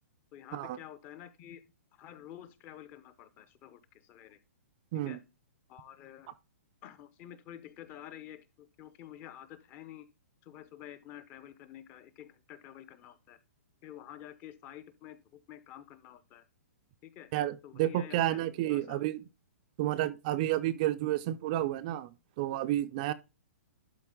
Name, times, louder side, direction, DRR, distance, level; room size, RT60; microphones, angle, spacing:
voice 1, 0.3-1.6 1.9-4.4 5.1-5.2 5.7-6.3 6.8-10.1 10.4-13.4 13.8-16.4 17.0-17.3 17.6-18.4 18.7-19.1, left 11 dB, 25° left, 0.7 m, -49 dB
voice 2, 17.3-19.2 19.8-23.1, right 14 dB, 30° right, 0.4 m, -31 dB
11.5 x 4.2 x 3.7 m
hypercardioid pair, 160°, 8 cm